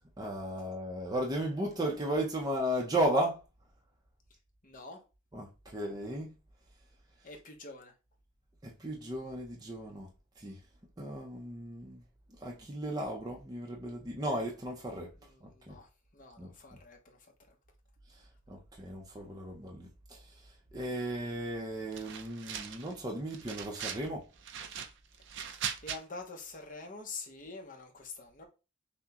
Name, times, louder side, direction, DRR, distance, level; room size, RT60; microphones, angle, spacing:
voice 1, 0.2-3.4 5.3-6.3 8.6-10.1 10.4-10.6 11.0-12.0 12.3-15.1 15.4-15.8 16.4-16.5 18.1-18.2 18.5-24.2, right 1 dB, 20° right, 0.6 m, -35 dB
voice 2, 4.6-5.0 7.2-7.9 15.2-17.5 25.5-28.5, left 3 dB, 40° left, 0.9 m, -47 dB
sound 1, 21.9-22.9 23.3-24.1 24.4-26.0, right 8 dB, 60° right, 0.5 m, -40 dB
5.8 x 2.2 x 2.8 m
head